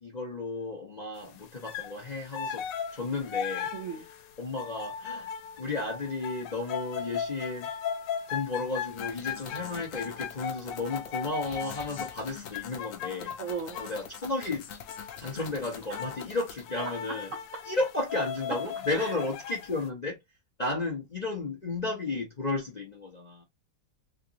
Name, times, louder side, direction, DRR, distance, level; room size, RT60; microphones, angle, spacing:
voice 1, 0.0-2.7 2.9-3.7 4.4-5.3 5.6-7.7 8.3-13.4 13.8-14.7 15.2-17.3 17.7-20.2 20.6-23.4, left 3 dB, 45° left, 0.5 m, -33 dB
sound 1, 1.6-2.0 2.3-14.1 14.9-15.5 15.8-16.3 16.6-19.8, left 7 dB, 85° left, 1.3 m, -37 dB
voice 2, 3.7-4.1 13.4-13.8 15.9-16.0 17.1-17.4 18.5-18.6 19.0-19.1, right 5 dB, 60° right, 0.9 m, -36 dB
sound 2, 8.9-16.7, left 8 dB, 60° left, 0.9 m, -45 dB
3.2 x 2.9 x 2.7 m
omnidirectional pair, 1.9 m